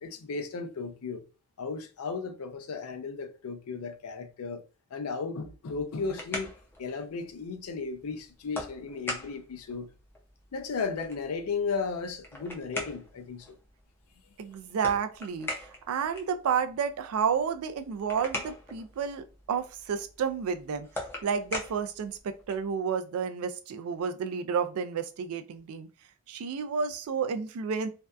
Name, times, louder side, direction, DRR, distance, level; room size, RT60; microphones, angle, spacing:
voice 1, 0.0-1.2 1.6-4.6 4.9-6.5 6.8-9.9 10.5-13.6, left 4 dB, 85° left, 0.4 m, -35 dB
sound 1, 5.7-22.8, left 1 dB, 10° left, 0.4 m, -43 dB
voice 2, 14.4-20.9 21.2-25.9 26.3-27.9, right 6 dB, 80° right, 0.3 m, -31 dB
2.6 x 2.2 x 2.2 m
head